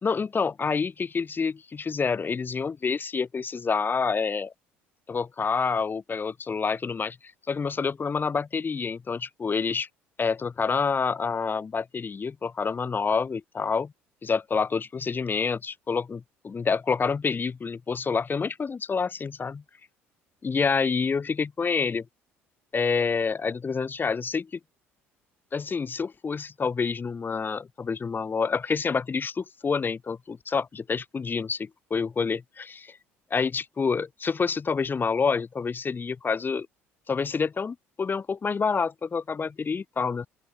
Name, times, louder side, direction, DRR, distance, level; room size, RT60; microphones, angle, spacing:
voice 1, 0.0-4.5 5.1-7.2 7.5-9.9 10.2-13.9 14.2-19.6 20.4-22.1 22.7-24.6 25.5-33.0 33.3-36.7 37.1-40.3, left 5 dB, 30° left, 2.9 m, -28 dB
open air
hypercardioid pair, 60°, 6 cm